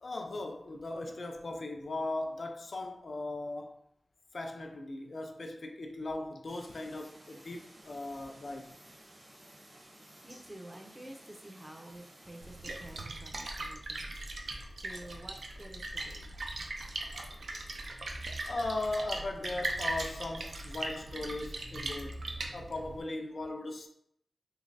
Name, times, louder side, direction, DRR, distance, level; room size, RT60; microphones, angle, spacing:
voice 1, 0.0-3.8 4.3-8.7 17.1-17.4 18.5-22.2 22.5-23.9, left 2 dB, 65° left, 0.4 m, -38 dB
sound 1, 6.5-13.1, right 1 dB, 60° right, 0.9 m, -55 dB
voice 2, 10.2-16.4, right 1 dB, 15° right, 0.5 m, -50 dB
Splash splatter, 12.4-23.0, right 2 dB, 85° right, 0.4 m, -39 dB
3.2 x 3.1 x 2.6 m
wide cardioid pair, 95°, 0 cm